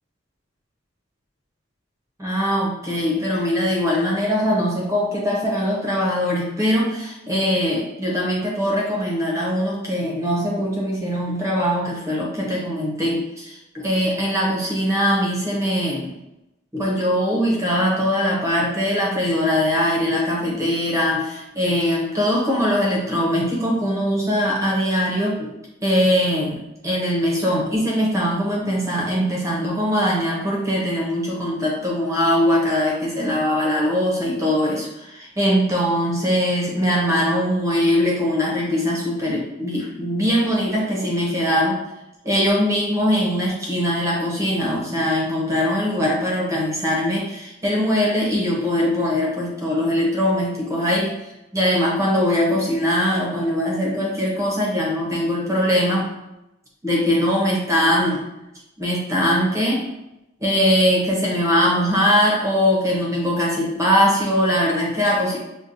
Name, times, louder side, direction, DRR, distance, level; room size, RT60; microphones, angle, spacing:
voice 1, 2.2-16.2 16.7-25.5 25.8-41.8 42.2-51.2 51.5-56.1 56.8-58.2 58.8-59.8 60.4-65.4, equal, 15° right, -4 dB, 0.7 m, -21 dB
5.7 x 2.2 x 2.6 m, 0.92 s
head